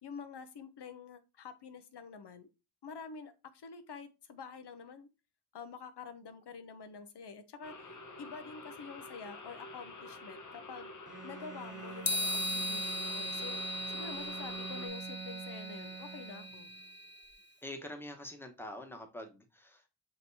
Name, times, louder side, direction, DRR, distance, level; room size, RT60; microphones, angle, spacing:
voice 1, 0.0-2.5 2.8-5.1 5.5-7.7 8.2-10.9 11.2-13.6 13.9-16.7, left 5 dB, 85° left, 0.6 m, -47 dB
sound 1, 7.6-14.9, left 2 dB, 50° left, 0.9 m, -48 dB
Bowed string instrument, 11.1-16.9, right 6 dB, 30° right, 0.7 m, -46 dB
sound 2, 12.0-17.3, left 1 dB, 30° left, 0.4 m, -38 dB
voice 2, 17.6-19.9, left 1 dB, 5° left, 1.0 m, -45 dB
6.5 x 2.9 x 2.7 m
wide cardioid pair, 50°, 40 cm